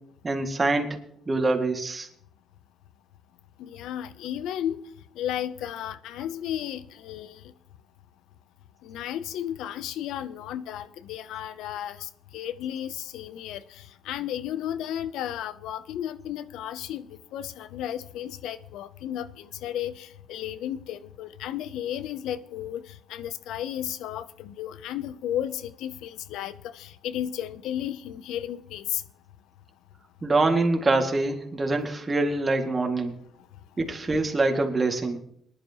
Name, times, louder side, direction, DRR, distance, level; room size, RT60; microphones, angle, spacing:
voice 1, 0.2-1.0 1.3-2.1 30.2-33.1 33.8-35.2, right 2 dB, 25° right, 3 dB, 2.0 m, -25 dB
voice 2, 3.6-4.8 5.2-7.5 8.8-29.0, left 11 dB, 90° left, 15 dB, 0.6 m, -34 dB
20.5 x 11.0 x 2.9 m, 0.68 s
cardioid pair, 90°, 0 cm